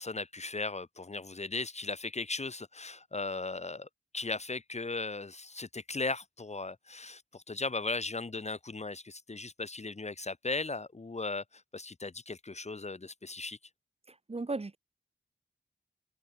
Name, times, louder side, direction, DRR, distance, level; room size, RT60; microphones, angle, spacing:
voice 1, 0.0-3.9 4.1-13.6, left 3 dB, 35° left, 1.1 m, -37 dB
voice 2, 14.1-14.8, right 3 dB, 30° right, 1.0 m, -36 dB
wide cardioid pair, 90°, 20 cm